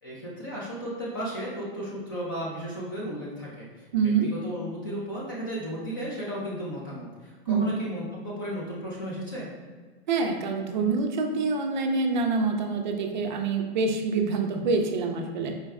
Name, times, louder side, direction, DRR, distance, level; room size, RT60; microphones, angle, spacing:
voice 1, 0.0-3.8 4.2-9.5, equal, 20° left, -5 dB, 0.3 m, -34 dB
voice 2, 3.9-4.3 7.5-7.8 10.1-15.6, right 4 dB, 45° right, 3 dB, 0.4 m, -26 dB
4.5 x 2.1 x 3.4 m, 1.5 s
supercardioid pair, 170°, 32 cm